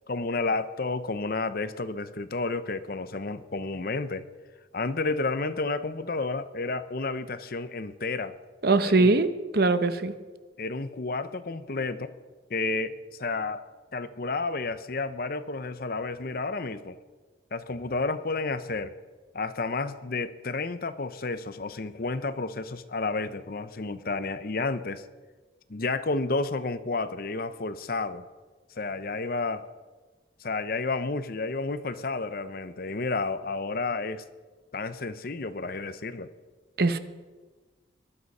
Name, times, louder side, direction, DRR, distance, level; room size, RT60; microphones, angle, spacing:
voice 1, 0.1-4.2 4.7-8.4 8.8-9.1 10.6-12.1 12.5-13.6 13.9-17.0 17.5-18.9 19.3-25.0 25.7-28.2 28.8-29.6 30.4-34.2 34.7-36.3, left 3 dB, 55° left, 13 dB, 0.8 m, -31 dB
voice 2, 8.6-9.3 9.5-10.1 36.8-37.0, right 3 dB, 55° right, 11 dB, 0.9 m, -21 dB
19.5 x 12.5 x 5.5 m, 1.3 s
head